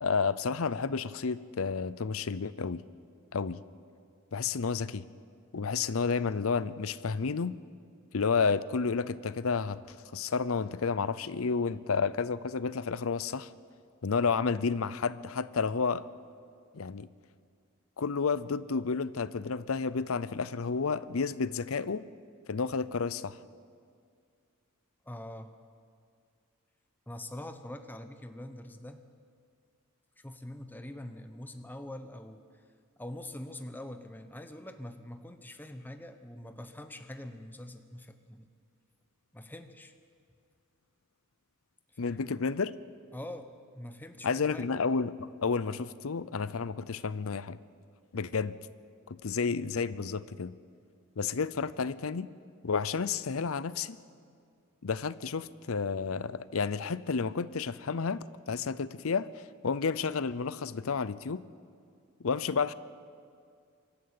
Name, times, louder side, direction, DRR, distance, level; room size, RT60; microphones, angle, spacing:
voice 1, 0.0-2.8 3.3-3.6 4.3-5.1 5.5-7.6 8.1-13.5 14.0-16.1 16.7-17.1 18.0-22.1 22.5-23.4 42.0-42.7 44.2-47.6 48.1-48.6 49.1-50.5 51.2-52.3 52.6-54.0 54.8-61.4 62.2-62.7, left 5 dB, 70° left, 17 dB, 0.6 m, -31 dB
voice 2, 25.0-25.5 27.1-29.1 30.2-32.5 33.0-38.5 39.3-39.9 42.0-42.2 43.1-44.7, left 1 dB, 10° left, 8 dB, 0.9 m, -44 dB
24.5 x 13.0 x 8.8 m, 2.3 s
head